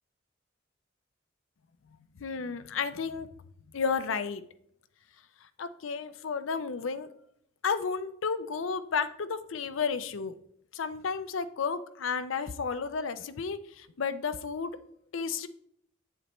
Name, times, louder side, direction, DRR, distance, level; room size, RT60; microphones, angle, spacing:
voice 1, 2.2-3.3 3.7-4.4 5.6-7.1 7.6-10.3 10.7-14.8 15.1-15.5, left 5 dB, 90° left, 12 dB, 0.5 m, -32 dB
8.1 x 7.4 x 3.0 m, 0.71 s
head